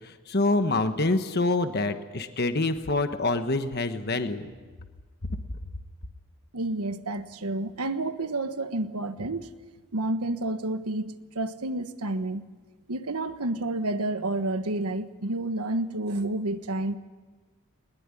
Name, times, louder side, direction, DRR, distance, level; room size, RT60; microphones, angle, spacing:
voice 1, 0.3-4.5, left 2 dB, 45° left, 8 dB, 1.3 m, -26 dB
voice 2, 6.5-9.5 9.9-12.4 12.9-17.0, right 2 dB, 80° right, 10 dB, 1.3 m, -30 dB
21.5 x 20.5 x 9.9 m, 1.4 s
head